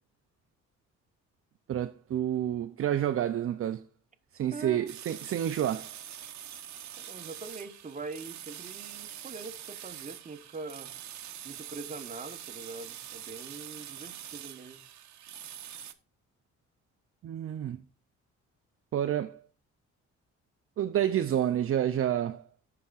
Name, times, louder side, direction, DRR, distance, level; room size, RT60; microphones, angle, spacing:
voice 1, 1.7-3.8 4.3-5.9 17.2-17.8 18.9-19.4 20.8-22.4, right 10 dB, 45° right, 0.5 m, -29 dB
voice 2, 4.5-4.9 7.0-10.9 11.4-14.8, right 4 dB, 25° right, 1.1 m, -43 dB
sound 1, 4.9-15.9, right 11 dB, 65° right, 0.9 m, -44 dB
13.5 x 5.9 x 2.4 m
cardioid pair, 90°, 30 cm